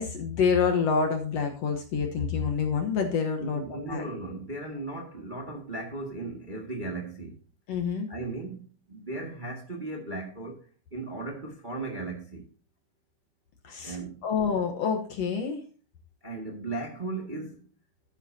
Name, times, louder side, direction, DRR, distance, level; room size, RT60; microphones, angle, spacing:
voice 1, 0.0-4.1 7.7-8.1 13.6-14.0 14.2-15.6, left 6 dB, 60° left, 1.9 m, -27 dB
voice 2, 3.4-7.4 8.1-8.6 8.9-10.6 10.9-12.5 13.8-14.2 16.2-17.6, right 2 dB, 25° right, 1.2 m, -36 dB
12.0 x 9.8 x 2.7 m
omnidirectional pair, 3.7 m